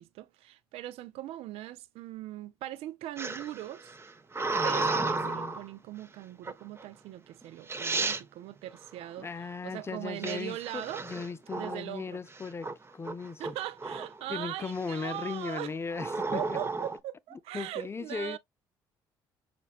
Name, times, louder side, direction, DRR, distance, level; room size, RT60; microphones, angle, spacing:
voice 1, 0.0-4.0 4.6-9.3 9.6-11.0 11.5-12.2 13.4-15.7 16.3-18.4, right 14 dB, 70° right, 0.4 m, -40 dB
sound 1, 3.2-5.7 6.4-6.8 7.4-7.5 7.7-8.2 10.2-11.9 12.3-12.7 13.0-14.2 14.7-15.1 15.9-17.0, right 3 dB, 25° right, 0.6 m, -33 dB
voice 2, 4.5-5.6 9.2-13.5 14.3-16.6 17.5-18.4, left 4 dB, 25° left, 0.5 m, -37 dB
5.8 x 2.1 x 2.3 m
hypercardioid pair, 60°, 11 cm